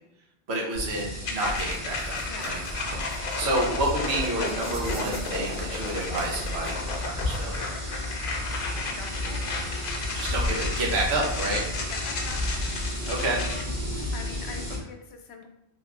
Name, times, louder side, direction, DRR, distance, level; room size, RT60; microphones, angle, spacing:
voice 1, 0.5-2.6 3.4-7.7 10.1-11.6 13.1-13.4, right 1 dB, 80° right, -3 dB, 1.1 m, -29 dB
sound 1, 0.7-14.8, left 1 dB, 20° right, 1.4 m, -33 dB
sound 2, 1.2-13.6, left 3 dB, 60° left, 0.7 m, -34 dB
Writing, 1.4-7.2, right 2 dB, 55° right, 0.8 m, -41 dB
voice 2, 9.0-9.4 11.9-12.4 14.1-15.5, left 5 dB, 90° left, 4 dB, 0.9 m, -42 dB
3.4 x 3.1 x 2.4 m, 0.88 s
omnidirectional pair, 1.1 m